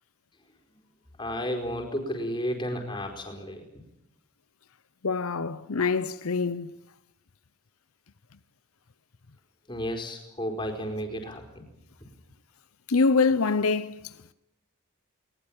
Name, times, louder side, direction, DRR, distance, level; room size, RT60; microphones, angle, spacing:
voice 1, 1.2-3.6 9.7-11.6, equal, 20° left, 4.7 m, -32 dB
voice 2, 5.0-6.8 12.9-14.1, left 4 dB, 85° left, 0.8 m, -25 dB
21.0 x 20.0 x 8.9 m
head